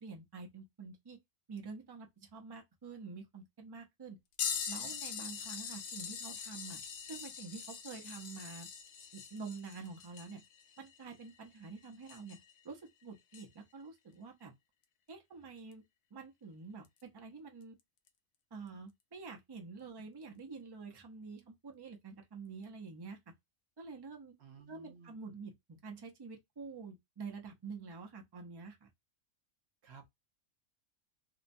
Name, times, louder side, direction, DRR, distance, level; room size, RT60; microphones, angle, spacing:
voice 1, 0.0-1.2 1.5-4.2 4.7-6.8 7.1-8.7 9.1-10.4 10.8-12.4 12.6-14.5 15.1-15.8 16.1-17.8 18.5-23.2 23.8-24.3 24.7-28.9, right 4 dB, 40° right, 0.3 m, -48 dB
sound 1, 4.4-12.6 13.3-13.4 15.7-15.8 16.9-17.0 18.1-18.2, left 7 dB, 75° left, 1.0 m, -42 dB
voice 2, 24.4-25.3 29.8-30.1, right 5 dB, 55° right, 0.9 m, -56 dB
2.7 x 2.2 x 2.6 m
omnidirectional pair, 1.4 m